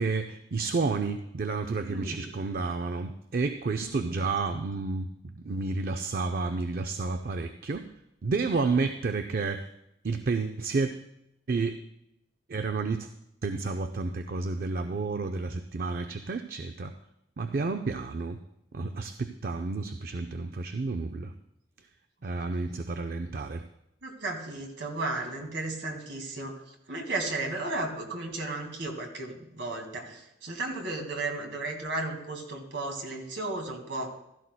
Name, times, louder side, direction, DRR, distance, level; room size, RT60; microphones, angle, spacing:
voice 1, 0.0-5.1 5.4-7.9 8.2-9.7 10.0-10.9 11.5-11.7 12.5-13.1 13.4-16.9 17.4-18.4 18.7-21.3 22.2-23.6, right 3 dB, 50° right, 8 dB, 0.4 m, -30 dB
voice 2, 1.8-2.3 3.8-4.2 24.0-26.5 26.9-34.1, right 2 dB, 65° right, 2 dB, 2.1 m, -34 dB
15.5 x 13.0 x 2.2 m, 0.82 s
head